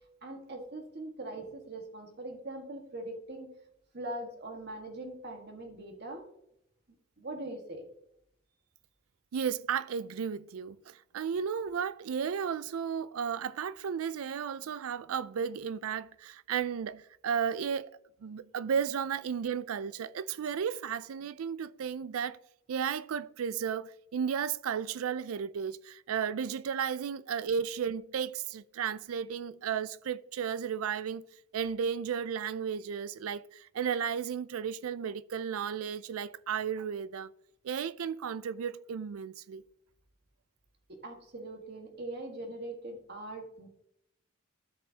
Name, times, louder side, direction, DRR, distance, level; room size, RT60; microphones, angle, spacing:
voice 1, 0.2-3.5 3.9-6.3 7.2-7.9 40.9-43.7, right 1 dB, 50° right, 1.6 m, -41 dB
voice 2, 9.3-22.4 22.7-31.3 31.5-37.3 37.6-39.6, right 7 dB, 85° right, 0.4 m, -34 dB
13.5 x 5.5 x 2.8 m
head